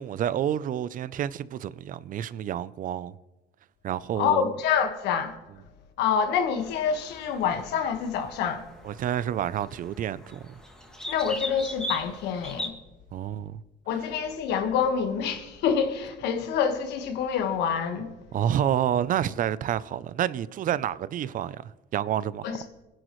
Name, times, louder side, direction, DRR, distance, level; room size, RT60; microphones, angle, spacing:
voice 1, 0.0-3.1 3.8-4.5 8.8-10.5 13.1-13.6 18.3-22.6, right 10 dB, 50° right, 0.5 m, -29 dB
voice 2, 4.1-5.4 6.0-8.7 11.1-12.7 13.9-18.1 22.4-22.6, left 7 dB, 85° left, 1.6 m, -27 dB
sound 1, 6.6-12.7, left 1 dB, 5° left, 2.7 m, -39 dB
22.0 x 11.5 x 3.2 m
cardioid pair, 110°, 17 cm